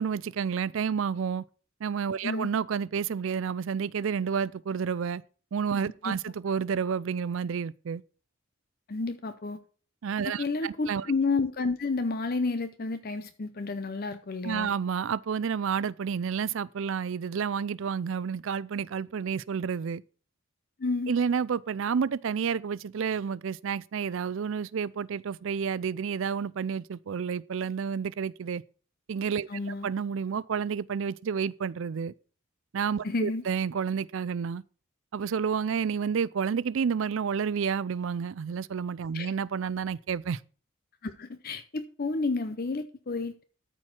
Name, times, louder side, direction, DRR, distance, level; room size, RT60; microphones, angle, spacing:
voice 1, 0.0-1.4 1.8-5.2 5.5-8.0 10.0-11.1 14.4-20.0 21.1-28.6 29.1-32.1 32.7-34.6 35.1-40.4, right 6 dB, 60° right, 0.4 m, -30 dB
voice 2, 8.9-9.6 10.4-14.7 20.8-21.1 29.5-29.9 33.0-33.4 39.1-39.3 41.0-43.4, left 3 dB, 45° left, 0.6 m, -31 dB
13.5 x 4.6 x 5.7 m
head